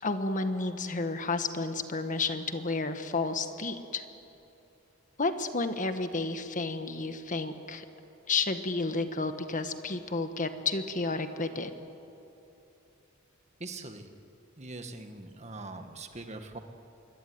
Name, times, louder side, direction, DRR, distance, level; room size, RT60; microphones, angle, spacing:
voice 1, 0.0-4.0 5.2-7.8 8.3-11.7, left 3 dB, 40° left, 8 dB, 1.5 m, -31 dB
voice 2, 13.6-14.1 14.6-16.6, right 2 dB, 35° right, 6 dB, 1.7 m, -42 dB
25.5 x 23.5 x 9.5 m, 2.9 s
head